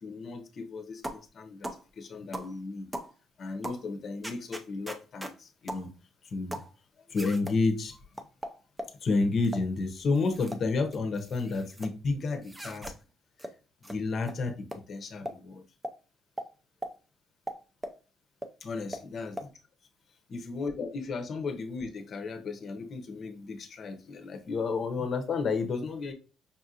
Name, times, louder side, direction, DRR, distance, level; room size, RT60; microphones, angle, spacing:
voice 1, 0.0-1.7 2.0-2.9 3.4-5.9 6.2-6.6 7.1-8.0 9.0-12.9 13.9-15.6 18.6-19.4 20.3-26.1, left 3 dB, 40° left, 0.7 m, -32 dB
sound 1, 1.0-1.3 1.6-1.8 2.3-2.5 2.9-3.1 3.6-3.8 4.2-5.4 5.7-5.9 6.5-6.7 7.1-7.6 8.2-9.0 9.4-9.7 10.2-10.6 10.9-11.9 12.4-13.0 13.4-13.5 13.8-14.0 14.2-14.4 14.7-14.8 15.3-15.4 15.8-16.0 16.4-16.5 16.8-16.9 17.5-18.0 18.4-18.5 18.9-19.0 19.4-19.5, equal, 10° right, 0.4 m, -39 dB
5.4 x 2.5 x 2.7 m
cardioid pair, 145°, 0 cm